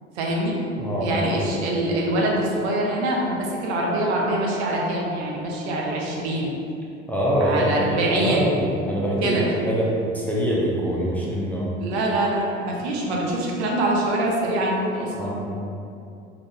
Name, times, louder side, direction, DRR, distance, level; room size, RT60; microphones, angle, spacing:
voice 1, 0.2-0.6 1.0-6.6 7.4-8.5 9.2-9.5 11.8-15.4, right 1 dB, 60° right, -2 dB, 0.9 m, -24 dB
voice 2, 0.8-1.5 7.1-11.7 15.2-15.4, equal, 5° left, -6 dB, 0.6 m, -24 dB
4.5 x 2.5 x 3.6 m, 2.6 s
figure-of-eight pair, 65°, 37 cm